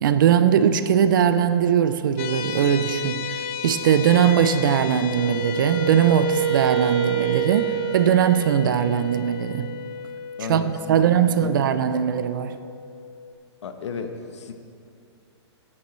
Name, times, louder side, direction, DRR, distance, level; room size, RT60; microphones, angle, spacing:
voice 1, 0.0-9.7 10.5-12.6, right 9 dB, 45° right, 11 dB, 0.4 m, -20 dB
sound 1, 2.2-13.3, left 7 dB, 25° left, 0.3 m, -34 dB
Wind instrument woodwind instrument, 5.1-9.0, right 10 dB, 75° right, 1.3 m, -27 dB
voice 2, 10.4-11.1 11.4-11.6 13.6-14.5, left 5 dB, 75° left, 7 dB, 0.9 m, -33 dB
10.0 x 8.7 x 3.2 m, 2.5 s
hypercardioid pair, 165°, 15 cm